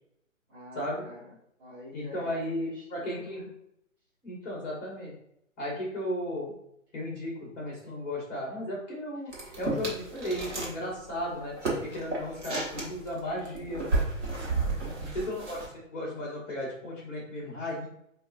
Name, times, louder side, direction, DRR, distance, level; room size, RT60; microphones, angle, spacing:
voice 1, 0.5-3.5 9.4-9.5 14.7-15.3, left 1 dB, 20° right, -9 dB, 0.8 m, -47 dB
voice 2, 1.9-3.4 4.2-5.1 5.6-6.5 6.9-9.3 9.6-13.8 15.1-15.6 15.9-17.9, left 1 dB, 10° left, -5 dB, 0.6 m, -35 dB
sound 1, 9.3-10.8 11.0-15.7, right 3 dB, 60° right, 1.2 m, -32 dB
4.5 x 2.4 x 2.4 m, 0.75 s
figure-of-eight pair, 135°, 39 cm